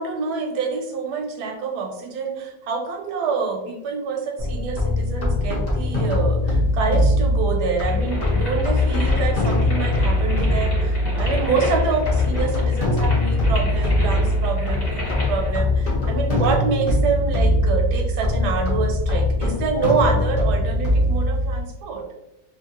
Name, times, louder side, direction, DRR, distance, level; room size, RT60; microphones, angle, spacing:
voice 1, 0.0-22.0, right 5 dB, 75° right, 3 dB, 1.1 m, -26 dB
sound 1, 4.4-21.6, left 1 dB, 55° left, 0.4 m, -21 dB
sound 2, 7.8-15.5, left 1 dB, 25° left, 1.2 m, -32 dB
2.8 x 2.6 x 2.8 m, 0.91 s
omnidirectional pair, 2.0 m